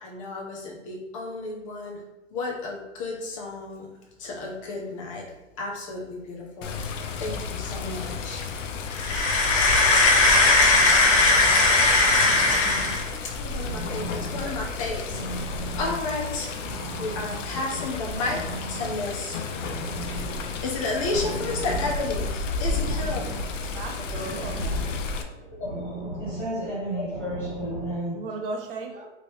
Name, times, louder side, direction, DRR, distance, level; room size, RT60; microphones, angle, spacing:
voice 1, 0.0-2.0 2.3-3.9 4.2-5.2 5.6-6.9 7.2-8.4 8.8-14.1 14.3-15.2 15.5-16.5 17.0-18.4 18.7-19.4 20.6-23.2 25.6-26.2, left 2 dB, 25° left, 0.6 m, -25 dB
Water, 6.6-25.2, left 4 dB, 80° left, 0.5 m, -32 dB
sound 1, 11.7-28.0, right 1 dB, 15° right, 1.5 m, -38 dB
voice 2, 23.7-25.0 28.1-29.1, right 3 dB, 50° right, 0.6 m, -35 dB
voice 3, 26.2-28.2, right 1 dB, 5° left, 1.2 m, -32 dB
2.9 x 2.8 x 3.1 m
hypercardioid pair, 155°, 37 cm